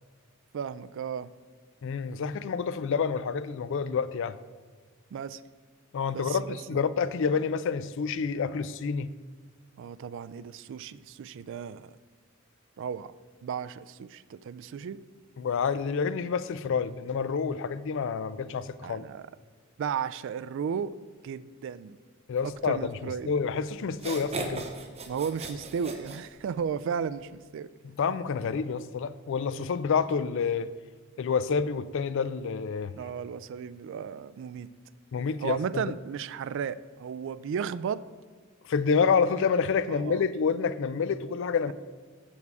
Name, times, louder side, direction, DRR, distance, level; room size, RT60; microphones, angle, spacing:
voice 1, 0.5-1.3 5.1-5.4 6.1-6.6 9.8-12.0 12.8-13.1 13.4-15.0 18.8-19.3 19.8-20.9 21.2-22.0 22.4-23.4 25.1-27.7 33.0-34.7 35.4-38.0 39.9-40.3, right 7 dB, 65° right, 0.3 m, -34 dB
voice 2, 1.8-4.4 5.9-9.1 15.4-19.1 22.3-24.6 27.8-30.7 31.2-32.9 35.1-35.8 38.6-41.7, left 5 dB, 65° left, 0.4 m, -28 dB
sound 1, 23.4-23.5 23.9-26.8, right 2 dB, 30° right, 0.8 m, -37 dB
7.2 x 6.9 x 4.7 m
head